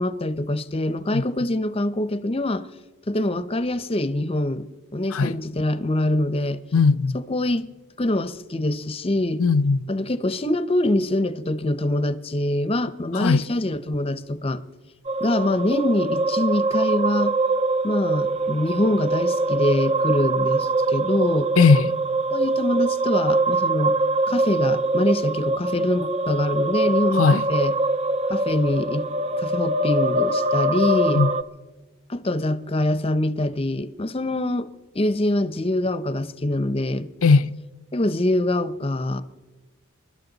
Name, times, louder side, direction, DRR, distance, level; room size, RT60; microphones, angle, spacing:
voice 1, 0.0-2.7 3.1-4.7 4.9-6.6 7.1-7.7 8.0-9.4 9.9-14.6 15.2-17.3 17.8-21.5 22.3-24.0 24.3-27.7 28.3-29.1 29.3-31.2 32.1-34.7 34.9-37.1 37.9-39.2, left 1 dB, 25° left, 0.7 m, -24 dB
voice 2, 6.7-7.2 9.4-9.8 13.2-13.4 21.6-21.9 27.2-27.4 31.2-31.3 37.2-37.6, left 4 dB, 65° left, 0.6 m, -17 dB
sound 1, 15.0-31.4, right 2 dB, 30° right, 0.4 m, -23 dB
28.0 x 12.0 x 4.0 m
head